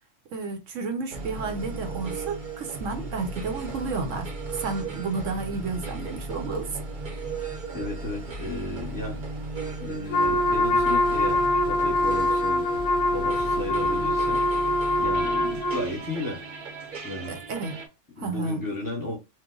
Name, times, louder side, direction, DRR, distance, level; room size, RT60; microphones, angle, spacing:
voice 1, 0.3-6.7 17.3-17.8 18.2-18.6, right 4 dB, 75° right, 1.1 m, -31 dB
sound 1, 1.1-17.9, right 3 dB, 45° right, 0.8 m, -36 dB
voice 2, 7.7-9.2 9.8-12.7 13.1-16.5 17.0-17.4 18.2-19.2, left 2 dB, 20° left, 0.9 m, -34 dB
Wind instrument woodwind instrument, 10.1-15.9, left 1 dB, 70° left, 0.8 m, -24 dB
3.0 x 2.1 x 3.7 m
omnidirectional pair, 1.3 m